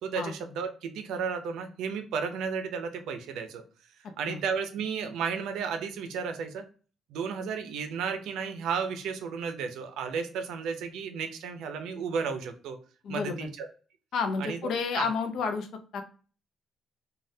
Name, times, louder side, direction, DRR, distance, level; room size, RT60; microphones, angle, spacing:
voice 1, 0.0-3.6 4.2-6.6 7.1-12.8 13.1-13.7 14.4-14.6 15.0-15.1, right 6 dB, 85° right, 7 dB, 0.4 m, -33 dB
voice 2, 13.0-13.5 14.1-15.7 15.9-16.0, left 5 dB, 75° left, 7 dB, 0.5 m, -30 dB
3.3 x 2.2 x 2.6 m, 0.38 s
cardioid pair, 90°, 0 cm